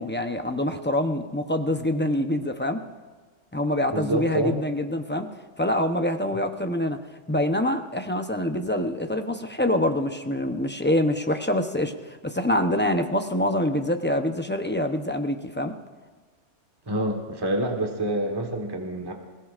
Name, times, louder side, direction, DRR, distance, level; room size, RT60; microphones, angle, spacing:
voice 1, 0.0-2.8 3.5-5.3 5.6-7.0 7.3-11.9 12.2-15.7, left 1 dB, 10° left, 6 dB, 0.5 m, -25 dB
voice 2, 3.9-4.6 16.9-19.1, right 1 dB, 20° right, 2 dB, 1.4 m, -27 dB
26.0 x 16.0 x 2.5 m, 1.4 s
omnidirectional pair, 1.3 m